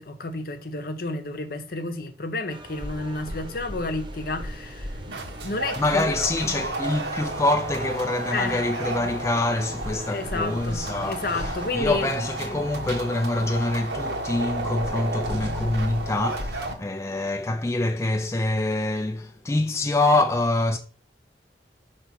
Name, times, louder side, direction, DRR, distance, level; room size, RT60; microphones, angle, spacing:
voice 1, 0.0-4.9 5.4-6.1 8.3-8.6 10.1-12.1, left 3 dB, 55° left, 0.8 m, -31 dB
sound 1, 2.5-11.7, right 2 dB, 30° right, 0.9 m, -43 dB
sound 2, 2.8-16.7, right 1 dB, 85° right, 1.4 m, -33 dB
voice 2, 5.8-20.8, left 2 dB, 15° left, 0.4 m, -25 dB
5.7 x 3.3 x 5.8 m
head